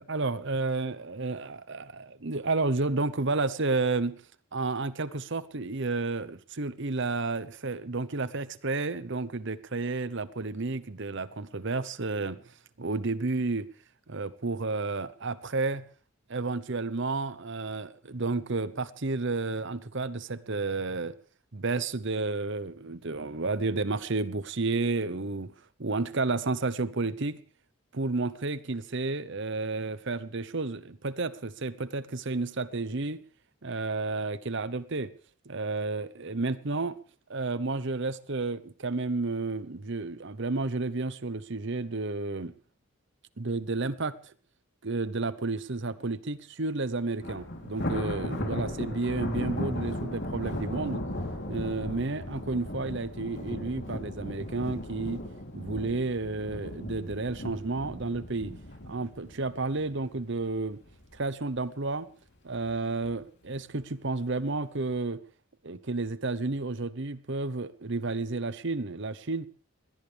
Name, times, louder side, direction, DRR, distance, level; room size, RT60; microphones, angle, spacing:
voice 1, 0.1-4.2 4.5-12.4 12.8-13.7 14.1-15.8 16.3-21.1 21.5-25.5 25.8-27.4 27.9-33.2 33.6-35.1 35.4-37.0 37.3-42.5 43.4-44.3 44.8-51.1 51.5-55.3 55.5-58.5 58.8-60.8 61.1-62.1 62.4-65.2 65.6-69.5, right 3 dB, 55° right, 0.9 m, -31 dB
Thunder, 47.2-60.5 60.9-61.2 61.6-61.7 62.5-63.1, left 1 dB, 50° left, 3.2 m, -36 dB
21.0 x 18.0 x 3.4 m
head